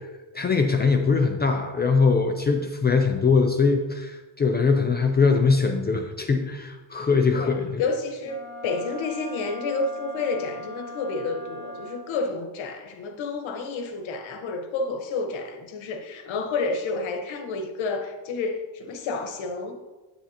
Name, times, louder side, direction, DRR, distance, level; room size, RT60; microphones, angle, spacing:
voice 1, 0.3-7.8, left 4 dB, 25° left, 4 dB, 0.4 m, -22 dB
voice 2, 7.3-19.8, left 3 dB, 90° left, 5 dB, 1.3 m, -30 dB
Wind instrument woodwind instrument, 8.2-12.3, equal, 25° right, 1.0 m, -40 dB
9.4 x 9.1 x 2.9 m, 1.2 s
cardioid pair, 175°, 45 cm